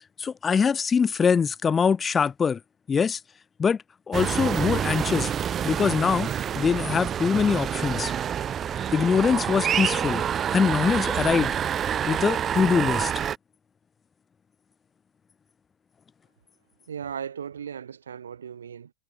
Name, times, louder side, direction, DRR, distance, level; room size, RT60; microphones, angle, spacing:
voice 1, 0.2-2.6 2.9-3.2 3.6-5.3 5.6-8.1 8.9-10.2 10.5-11.5 12.0-13.1, left 6 dB, 25° left, 0.5 m, -23 dB
sound 1, 4.1-13.4, right 9 dB, 35° right, 0.4 m, -27 dB
voice 2, 16.9-18.9, right 8 dB, 80° right, 0.6 m, -37 dB
figure-of-eight pair, 75°, 0 cm